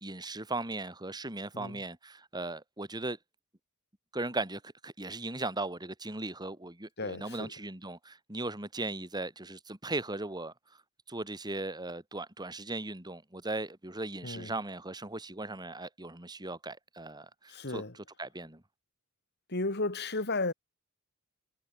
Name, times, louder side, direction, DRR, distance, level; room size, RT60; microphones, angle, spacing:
voice 1, 0.0-3.2 4.1-10.5 11.1-17.8 18.2-18.6, right 2 dB, 20° right, 2.8 m, -38 dB
voice 2, 7.0-7.5 14.2-14.5 17.5-18.0 19.5-20.5, left 2 dB, 50° left, 2.8 m, -34 dB
head